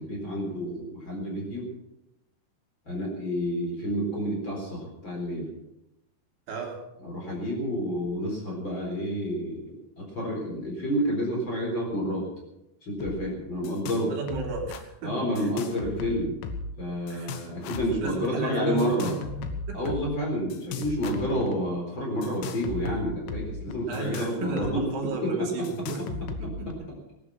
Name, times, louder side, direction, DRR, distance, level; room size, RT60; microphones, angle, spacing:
voice 1, 0.0-1.7 2.9-5.5 7.0-12.3 12.8-14.1 15.0-16.4 16.8-19.1 19.7-24.9 25.2-25.7 26.4-26.5, equal, 25° left, -1 dB, 4.3 m, -29 dB
voice 2, 6.5-6.8 14.1-15.5 17.1-17.3 18.0-19.8 23.9-26.9, right 4 dB, 75° right, 0 dB, 5.3 m, -34 dB
sound 1, 13.0-13.2 13.4-14.0 14.3-14.8 15.4-16.8 17.1-18.0 18.8-20.0 20.5-21.6 22.2-24.7 25.0-25.1 25.6-26.7, left 5 dB, 80° left, 3.6 m, -36 dB
19.0 x 12.0 x 5.8 m, 0.88 s
omnidirectional pair, 5.4 m